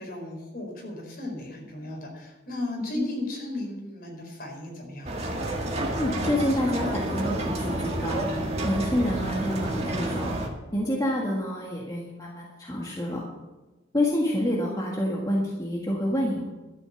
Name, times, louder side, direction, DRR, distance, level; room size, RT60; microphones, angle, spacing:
voice 1, 0.0-5.1, left 2 dB, 50° left, 0 dB, 4.6 m, -36 dB
sound 1, 5.1-10.5, right 1 dB, 35° right, 1.9 m, -29 dB
voice 2, 6.0-8.2 8.6-10.3 10.7-13.3 13.9-16.4, left 1 dB, 20° left, -3 dB, 1.7 m, -28 dB
12.5 x 8.3 x 6.9 m, 1.1 s
head